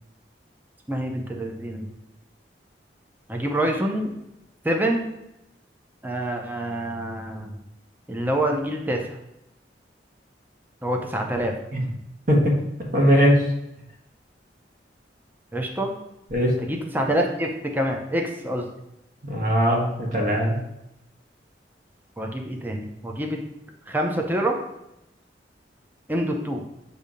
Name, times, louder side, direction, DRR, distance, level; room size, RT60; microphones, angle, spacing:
voice 1, 0.9-1.9 3.3-4.1 4.6-5.1 6.0-7.5 8.1-9.0 10.8-11.5 15.5-15.9 16.6-18.7 22.2-23.4 23.9-24.6 26.1-26.6, right 1 dB, 10° right, 2 dB, 0.6 m, -26 dB
voice 2, 12.3-13.4 16.3-16.5 19.2-20.5, equal, 50° right, -2 dB, 1.4 m, -20 dB
6.7 x 2.8 x 5.0 m, 0.85 s
head